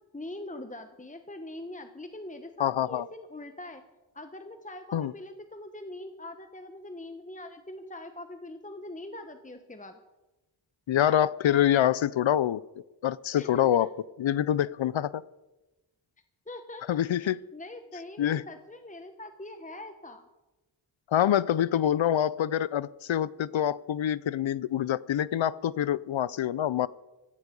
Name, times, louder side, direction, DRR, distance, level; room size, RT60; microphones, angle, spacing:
voice 1, 0.1-3.8 4.1-10.0 13.4-13.9 16.5-16.8 17.1-20.3, left 1 dB, 15° left, 7 dB, 1.2 m, -42 dB
voice 2, 2.6-3.1 4.9-5.1 10.9-12.6 13.0-13.9 14.2-15.2 16.9-17.4 18.2-18.4 21.1-26.9, left 10 dB, 85° left, 20 dB, 0.5 m, -26 dB
16.5 x 15.0 x 5.3 m, 1.1 s
wide cardioid pair, 60°, 46 cm